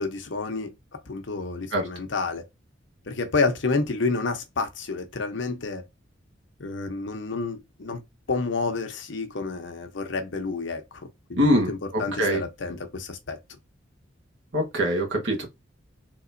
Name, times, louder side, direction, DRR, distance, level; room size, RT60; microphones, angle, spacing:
voice 1, 0.0-2.5 3.1-5.8 6.6-8.0 8.3-13.4, left 3 dB, 75° left, 0.8 m, -29 dB
voice 2, 11.4-11.7 12.2-12.4 14.5-15.4, equal, 80° right, 1.4 m, -22 dB
3.9 x 2.9 x 2.6 m
head